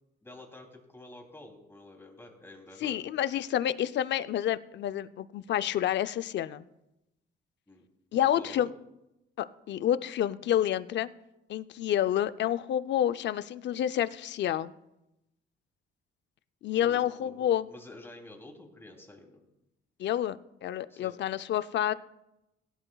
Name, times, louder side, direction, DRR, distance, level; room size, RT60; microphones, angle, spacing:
voice 1, 0.2-3.0 7.7-7.9 8.3-8.7 16.8-19.4 20.9-21.2, left 2 dB, 10° left, 1 dB, 2.9 m, -49 dB
voice 2, 2.8-6.6 8.1-8.7 9.4-11.1 11.5-14.7 16.6-17.7 20.0-21.9, left 11 dB, 65° left, 13 dB, 0.5 m, -29 dB
17.5 x 11.0 x 2.3 m, 0.91 s
cardioid pair, 90°, 20 cm